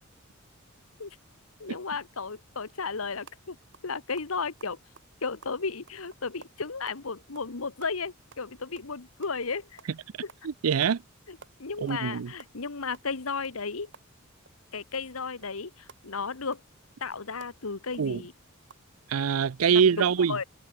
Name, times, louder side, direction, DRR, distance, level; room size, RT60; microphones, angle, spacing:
voice 1, 1.6-3.6 3.8-4.8 5.2-9.8 10.2-10.3 11.3-13.9 14.7-16.6 17.0-18.3 19.7-20.4, left 4 dB, 80° left, 1.3 m, -34 dB
sound 1, 3.3-3.4 3.7-3.9 4.2-7.0 7.4-7.5 7.8-9.4 9.8-10.0 10.3-10.5 10.8-11.0 11.2-12.1 12.3-14.6 14.9-18.9 19.3-19.4 19.7-19.8, right 4 dB, 60° right, 4.2 m, -53 dB
voice 2, 10.4-11.0 11.8-12.3 18.0-18.2 19.1-20.4, right 6 dB, 85° right, 0.5 m, -24 dB
head